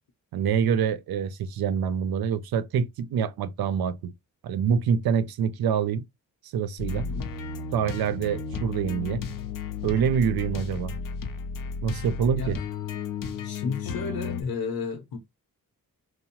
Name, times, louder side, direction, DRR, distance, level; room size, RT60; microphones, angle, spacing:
voice 1, 0.3-4.1 4.4-6.0 6.5-7.1 7.7-9.2 9.8-10.9 11.8-12.6, right 7 dB, 85° right, 0.5 m, -26 dB
sound 1, 6.8-14.4, left 5 dB, 65° left, 0.6 m, -33 dB
voice 2, 13.4-15.2, left 5 dB, 80° left, 0.9 m, -32 dB
2.8 x 2.0 x 2.8 m
wide cardioid pair, 125°, 35 cm